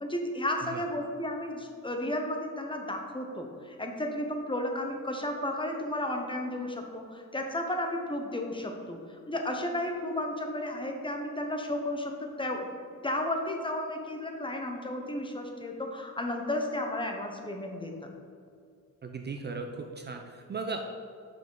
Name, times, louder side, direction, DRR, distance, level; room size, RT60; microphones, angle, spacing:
voice 1, 0.0-12.7 13.0-18.1, left 1 dB, 15° left, 3 dB, 0.7 m, -33 dB
voice 2, 19.0-20.9, right 4 dB, 35° right, 3 dB, 0.4 m, -37 dB
5.5 x 5.3 x 3.7 m, 2.3 s
cardioid pair, 100°, 32 cm